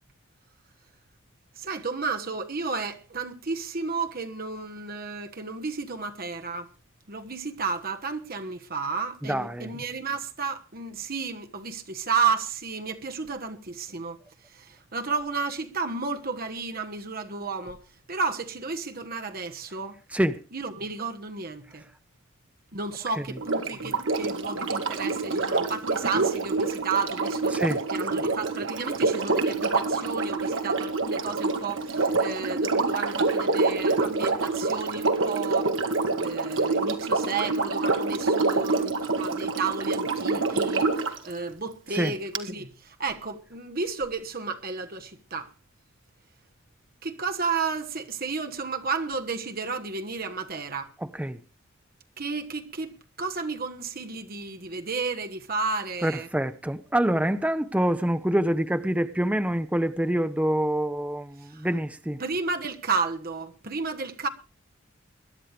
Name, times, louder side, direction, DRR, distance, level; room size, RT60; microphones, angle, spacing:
voice 1, 1.6-6.7 7.1-14.2 14.5-17.8 18.1-20.0 20.5-21.9 22.7-27.6 27.9-35.7 36.2-45.5 47.0-50.9 52.2-56.3 61.5-61.7 62.2-64.3, right 4 dB, 45° right, 1.3 m, -32 dB
voice 2, 9.2-9.7 20.1-20.4 27.5-27.8 41.9-42.1 51.2-51.4 56.0-62.2, right 1 dB, 5° right, 0.6 m, -26 dB
Sink (filling or washing), 23.4-41.2 42.3-42.4, right 3 dB, 65° right, 1.6 m, -26 dB
22.0 x 11.0 x 3.4 m
head